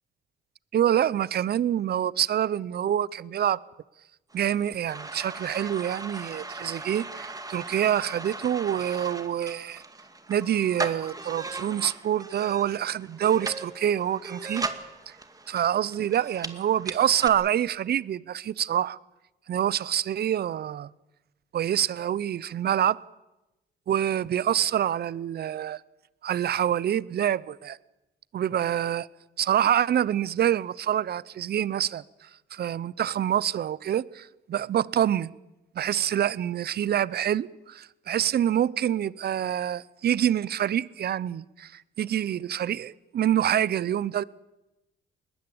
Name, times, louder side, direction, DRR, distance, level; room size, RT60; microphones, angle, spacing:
voice 1, 0.7-3.6 4.3-9.8 10.3-14.7 15.1-15.2 15.5-19.0 19.5-20.9 21.5-23.0 23.9-25.8 26.2-27.8 28.3-29.1 29.4-32.0 32.5-35.3 35.7-44.2, right 10 dB, 55° right, 0.7 m, -26 dB
sound 1, 4.3-17.3, right 3 dB, 20° right, 2.1 m, -38 dB
20.5 x 19.5 x 8.7 m
cardioid pair, 90°, 20 cm